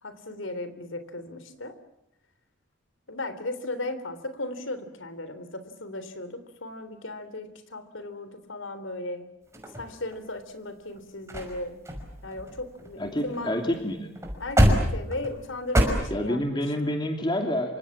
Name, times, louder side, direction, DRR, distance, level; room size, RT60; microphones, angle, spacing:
voice 1, 0.0-1.8 3.1-9.3 9.8-11.8 12.2-13.5 14.4-16.6, left 2 dB, 85° left, 11 dB, 3.5 m, -36 dB
sound 1, 9.5-10.4 11.0-11.1 11.3-11.5 11.9-13.4 13.7-13.8 14.2-15.8, equal, 15° right, 5.8 m, -25 dB
voice 2, 13.0-14.1 16.1-17.8, left 1 dB, 25° left, 4 dB, 2.8 m, -28 dB
28.0 x 26.0 x 7.3 m, 0.86 s
head